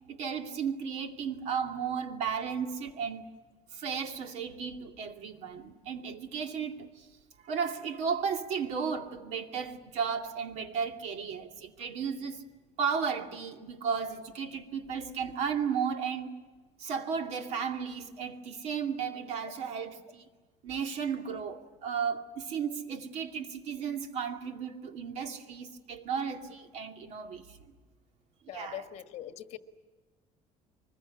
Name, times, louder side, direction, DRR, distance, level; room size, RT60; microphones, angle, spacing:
voice 1, 0.1-3.2 3.7-7.1 7.4-12.4 12.8-16.3 16.8-20.2 20.6-27.6 28.5-28.8, right 6 dB, 60° right, 2.3 m, -34 dB
voice 2, 28.5-29.6, left 12 dB, 55° left, 1.5 m, -42 dB
24.0 x 21.5 x 9.7 m
cardioid pair, 170°, 13 cm